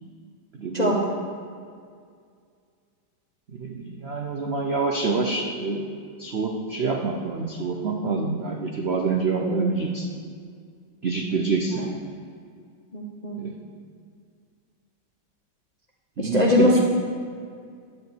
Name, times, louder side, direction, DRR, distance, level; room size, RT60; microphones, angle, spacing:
voice 1, 0.5-0.9 3.5-5.9 6.2-10.0 11.0-11.8 13.3-13.6 16.2-16.8, right 4 dB, 85° right, 1 dB, 0.5 m, -26 dB
voice 2, 9.4-9.8 11.7-11.9 12.9-13.4 16.2-16.8, left 2 dB, 45° left, -2 dB, 0.5 m, -22 dB
10.5 x 4.9 x 7.7 m, 2.2 s
omnidirectional pair, 2.1 m